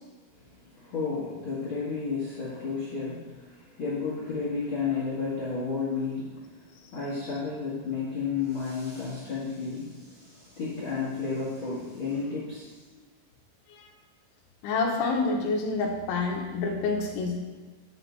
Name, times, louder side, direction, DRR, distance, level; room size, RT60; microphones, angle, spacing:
voice 1, 0.5-13.0, left 5 dB, 50° left, -8 dB, 1.5 m, -32 dB
voice 2, 14.6-17.6, left 3 dB, 80° left, 1 dB, 3.4 m, -28 dB
9.8 x 7.9 x 4.0 m, 1.3 s
omnidirectional pair, 5.6 m